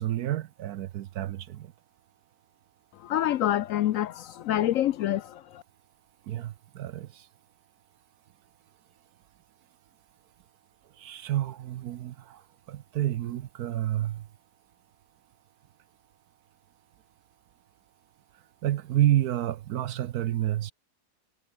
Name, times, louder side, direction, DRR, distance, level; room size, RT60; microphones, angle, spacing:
voice 1, 0.0-1.7 6.2-7.3 10.9-14.3 18.6-20.7, right 13 dB, 70° right, 1.2 m, -29 dB
voice 2, 3.0-5.6, left 12 dB, 70° left, 0.8 m, -27 dB
omnidirectional pair, 1.7 m